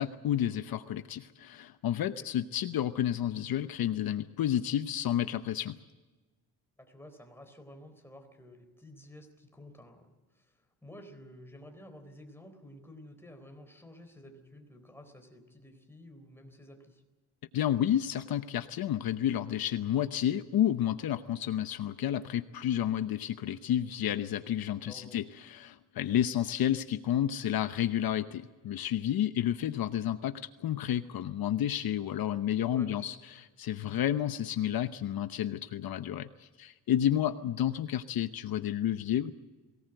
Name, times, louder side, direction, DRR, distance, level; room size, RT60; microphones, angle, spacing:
voice 1, 0.0-5.8 17.5-39.3, left 11 dB, 65° left, 10 dB, 0.9 m, -31 dB
voice 2, 6.8-17.0 24.7-25.2 32.7-33.1 33.8-34.1, left 1 dB, 5° left, 5 dB, 3.9 m, -52 dB
23.0 x 18.5 x 7.9 m, 1.2 s
cardioid pair, 130°, 39 cm